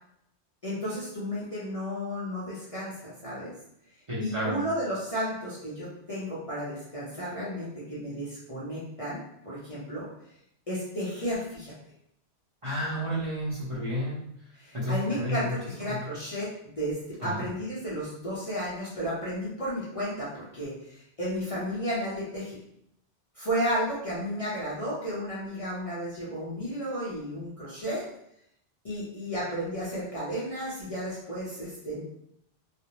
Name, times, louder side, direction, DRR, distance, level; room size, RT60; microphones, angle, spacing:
voice 1, 0.6-3.5 4.2-10.1 10.7-11.7 14.6-22.6 23.3-28.0 28.8-32.0, equal, 40° left, -8 dB, 0.6 m, -33 dB
voice 2, 4.1-4.6 12.6-14.2 14.7-16.0 17.2-17.5, equal, 35° right, -9 dB, 0.7 m, -31 dB
2.5 x 2.0 x 2.9 m, 0.74 s
omnidirectional pair, 1.1 m